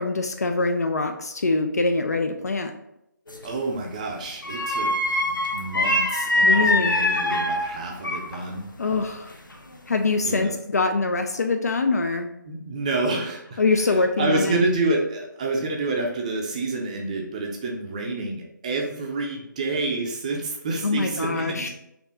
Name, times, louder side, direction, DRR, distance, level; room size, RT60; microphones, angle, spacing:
voice 1, 0.0-2.7 6.4-7.0 8.8-9.3 9.9-12.3 13.6-14.6 20.8-21.7, left 3 dB, 50° left, 6 dB, 0.4 m, -24 dB
sound 1, 3.3-3.6 4.4-8.5 8.8-9.8 10.2-10.4, left 1 dB, 80° left, 0.7 m, -24 dB
voice 2, 3.4-5.2 5.5-8.7 10.2-10.5 12.4-21.7, right 2 dB, 20° right, 0 dB, 0.5 m, -28 dB
4.3 x 2.8 x 4.0 m, 0.80 s
figure-of-eight pair, 150°, 11 cm